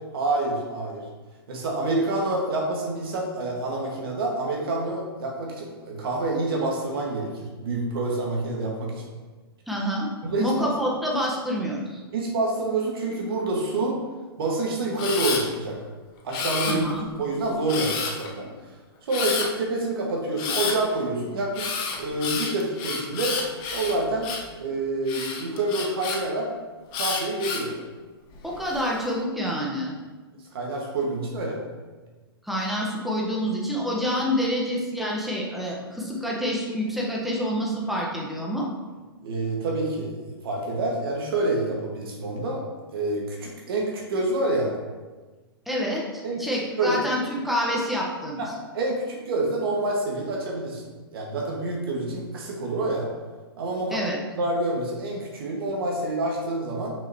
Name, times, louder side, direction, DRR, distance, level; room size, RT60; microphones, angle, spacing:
voice 1, 0.1-1.0 1.5-9.1 10.2-10.7 12.1-14.0 14.4-15.8 16.2-16.9 17.2-18.5 19.0-21.7 22.0-23.4 23.7-24.3 24.6-26.5 26.9-27.7 30.5-31.6 39.2-42.6 42.9-44.7 46.2-46.5 46.8-47.0 48.4-48.5 48.7-50.8 51.1-53.1 53.6-54.1 54.3-56.9, right 2 dB, 70° right, -1 dB, 1.7 m, -27 dB
voice 2, 9.7-10.1 10.4-12.0 16.7-17.1 28.4-29.9 32.4-38.7 45.7-48.4 53.9-54.2, equal, ahead, -3 dB, 1.2 m, -27 dB
Camera, 15.0-15.4 16.3-17.1 17.7-18.3 19.1-19.5 20.4-20.8 21.5-24.5 25.1-26.2 26.9-27.7 28.3-28.8, left 5 dB, 35° left, 1.0 m, -29 dB
6.1 x 5.5 x 3.0 m, 1.3 s
hypercardioid pair, 125°, 13 cm